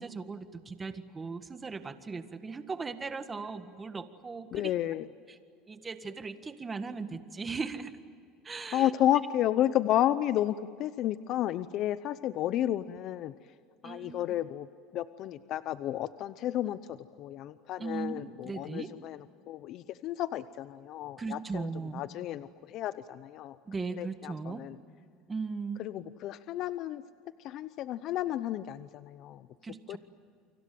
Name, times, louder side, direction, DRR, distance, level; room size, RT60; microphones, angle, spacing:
voice 1, 0.0-4.7 5.3-5.4 5.7-8.0 8.4-8.9 13.8-14.3 17.8-18.9 21.2-22.0 23.7-24.7 25.3-25.8 29.6-30.0, right 4 dB, 20° right, 9 dB, 1.7 m, -38 dB
voice 2, 4.5-5.1 8.7-13.3 13.8-14.7 14.9-24.8 25.8-27.0 27.4-29.5 29.9-30.0, left 12 dB, 50° left, 13 dB, 0.7 m, -32 dB
30.0 x 25.0 x 7.8 m, 2.4 s
cardioid pair, 140°, 0 cm